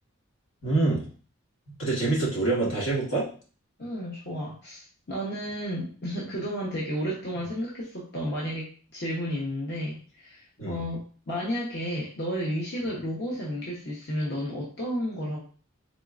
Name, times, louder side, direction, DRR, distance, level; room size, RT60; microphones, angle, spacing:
voice 1, 0.6-1.1 1.8-3.3 10.6-10.8, right 2 dB, 80° left, -4 dB, 1.6 m, -25 dB
voice 2, 3.8-15.4, equal, 60° left, -6 dB, 1.0 m, -32 dB
4.0 x 3.7 x 2.5 m, 0.40 s
head